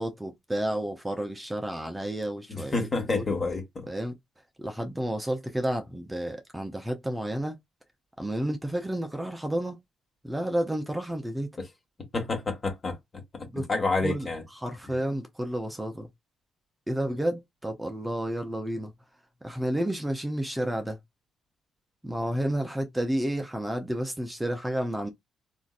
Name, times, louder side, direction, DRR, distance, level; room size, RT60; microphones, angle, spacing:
voice 1, 0.0-3.2 3.9-4.2 4.6-7.6 8.2-9.8 10.2-11.5 13.4-13.7 14.0-16.1 16.9-18.9 19.4-21.0 22.0-25.1, right 1 dB, 10° right, 0.7 m, -31 dB
voice 2, 2.5-3.9 12.1-13.0 13.5-14.4, left 3 dB, 30° left, 1.5 m, -28 dB
3.7 x 2.6 x 2.4 m
cardioid pair, 90°, 0 cm